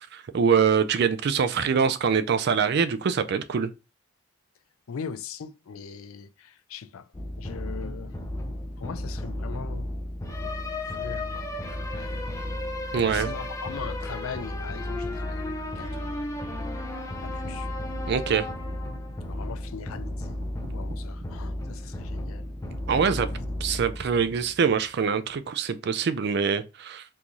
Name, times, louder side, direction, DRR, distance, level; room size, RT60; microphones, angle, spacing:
voice 1, 0.1-3.7 12.9-13.3 18.1-18.5 22.9-23.3 23.6-27.0, right 6 dB, 50° right, 0.3 m, -24 dB
voice 2, 4.9-7.1 7.4-8.2 8.8-9.9 10.4-10.5 10.8-12.3 12.8-16.3 17.2-17.7 19.3-20.4 20.7-22.5 23.2-23.3 23.7-23.8, left 6 dB, 80° left, 0.4 m, -40 dB
sound 1, 7.1-24.7, left 1 dB, 15° left, 0.5 m, -33 dB
3.7 x 2.6 x 2.9 m
head